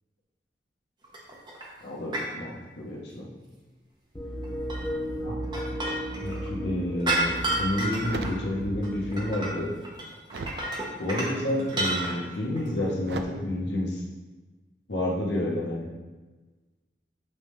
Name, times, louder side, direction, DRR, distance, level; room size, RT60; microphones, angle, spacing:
sound 1, 1.0-1.6 2.1-2.3 4.4-6.5 7.0-8.3 8.6-9.6 9.8-11.3 11.6-12.2 12.6-12.7, right 2 dB, 25° right, 0.9 m, -30 dB
voice 1, 1.8-3.3 5.2-5.4 6.2-9.7 11.0-14.0 14.9-15.9, left 1 dB, 85° left, -2 dB, 1.2 m, -30 dB
sound 2, 4.1-9.5, equal, 15° left, 0.7 m, -36 dB
sound 3, 7.7-9.0 9.3-10.7 11.3-11.8 13.0-13.2, right 3 dB, 65° right, 0.4 m, -39 dB
8.0 x 3.6 x 3.3 m, 1.3 s
head